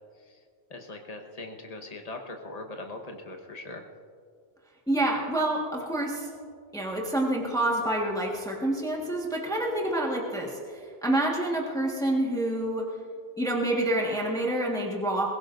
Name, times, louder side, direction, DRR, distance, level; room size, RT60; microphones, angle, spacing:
voice 1, 0.7-3.8, left 2 dB, 35° left, 3 dB, 1.3 m, -40 dB
voice 2, 4.9-6.3 6.7-12.9 13.4-15.3, right 1 dB, 5° left, -2 dB, 1.5 m, -27 dB
22.5 x 16.0 x 2.6 m, 2.2 s
omnidirectional pair, 1.1 m